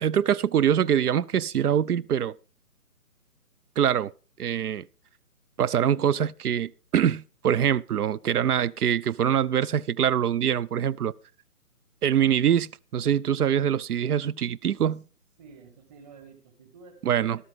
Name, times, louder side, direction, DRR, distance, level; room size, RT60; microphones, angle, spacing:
voice 1, 0.0-2.4 3.8-4.1 4.4-4.9 5.6-11.1 12.0-15.0 17.0-17.4, right 9 dB, 75° right, 0.5 m, -24 dB
voice 2, 15.4-17.4, right 5 dB, 25° right, 1.9 m, -51 dB
12.5 x 12.5 x 3.6 m
figure-of-eight pair, 155°, 45 cm